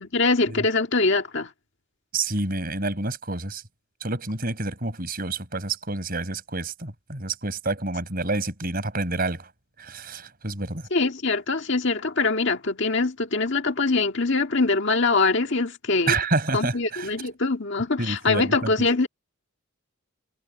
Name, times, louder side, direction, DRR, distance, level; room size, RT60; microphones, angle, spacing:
voice 1, 0.0-1.5 10.9-16.2 16.5-19.1, left 3 dB, 55° left, 1.9 m, -23 dB
voice 2, 2.1-3.6 4.0-9.5 9.8-10.9 16.1-17.1 18.0-18.7, right 2 dB, 40° right, 5.2 m, -28 dB
head